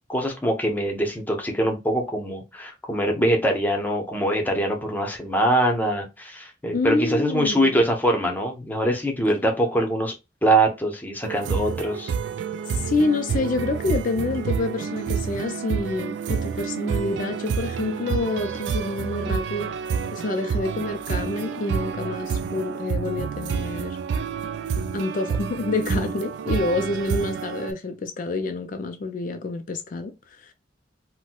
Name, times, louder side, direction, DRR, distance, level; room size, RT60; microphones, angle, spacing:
voice 1, 0.1-10.1 10.4-12.1, right 1 dB, 10° left, 0.7 m, -23 dB
voice 2, 6.7-7.7 12.8-19.7 20.1-24.0 24.9-30.1, left 3 dB, 45° left, 0.4 m, -27 dB
sound 1, 11.2-27.7, right 6 dB, 70° right, 0.3 m, -29 dB
4.2 x 2.1 x 2.2 m
head